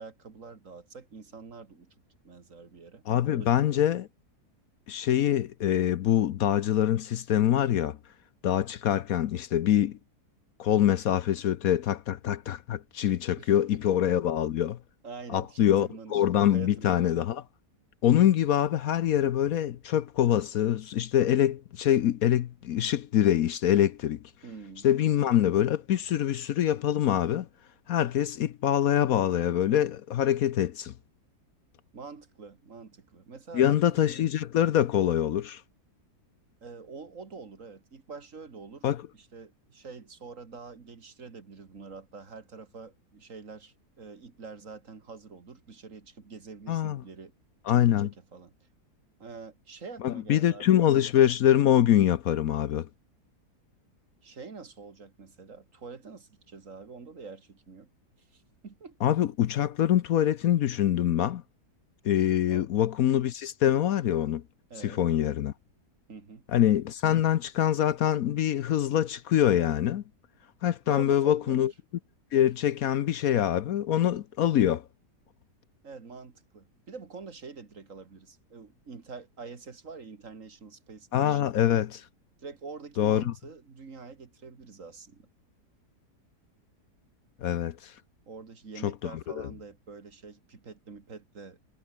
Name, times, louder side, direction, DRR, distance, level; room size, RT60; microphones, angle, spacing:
voice 1, 0.0-1.9 2.2-3.8 13.4-13.5 15.0-16.2 16.5-17.1 24.4-24.9 31.9-34.3 36.6-38.9 39.1-47.3 47.7-48.5 49.2-50.9 54.2-57.9 58.3-59.0 62.5-62.7 64.7-65.0 66.1-66.4 70.9-71.7 75.8-81.5 82.4-85.3 88.3-91.6, right 4 dB, 50° right, 2.4 m, -46 dB
voice 2, 3.1-4.1 4.9-8.0 8.4-10.0 10.6-14.8 15.3-17.4 18.0-24.2 24.8-27.5 27.9-30.9 33.5-35.6 38.8-39.0 46.7-47.0 47.7-48.1 50.0-52.9 59.0-61.4 62.0-64.4 64.8-65.5 66.5-70.0 70.6-71.7 72.3-74.8 81.1-82.0 83.0-83.3 87.4-87.9 88.8-89.1 89.4-89.5, left 11 dB, 65° left, 1.1 m, -24 dB
omnidirectional pair, 1.7 m